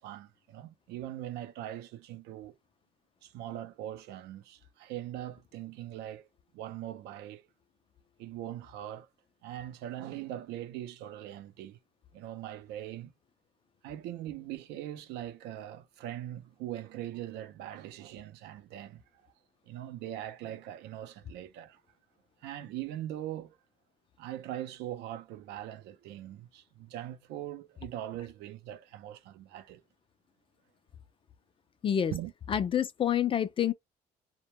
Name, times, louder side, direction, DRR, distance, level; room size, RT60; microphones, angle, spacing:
voice 1, 0.0-2.5 3.2-6.3 6.5-7.4 8.2-9.1 9.4-11.8 12.1-13.1 13.8-19.0 19.7-21.8 22.4-23.6 24.2-29.8 32.1-32.3, right 12 dB, 85° right, 0.5 m, -41 dB
voice 2, 32.5-33.7, left 9 dB, 30° left, 0.4 m, -27 dB
2.1 x 2.1 x 2.9 m
cardioid pair, 110°, 17 cm